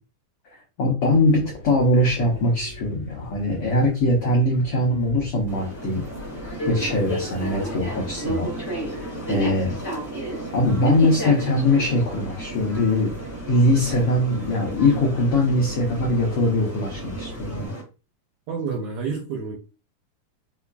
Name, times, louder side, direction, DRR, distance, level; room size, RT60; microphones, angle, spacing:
voice 1, 0.8-6.0 6.7-8.5 8.9-9.7 10.5-13.1 13.5-17.7, left 1 dB, 85° left, 1.2 m, -21 dB
sound 1, 1.0-17.7, left 1 dB, 65° left, 1.8 m, -41 dB
sound 2, 5.5-17.8, right 1 dB, 10° left, 0.8 m, -33 dB
voice 2, 18.5-19.6, right 5 dB, 75° right, 1.6 m, -29 dB
5.4 x 2.4 x 2.2 m
omnidirectional pair, 3.7 m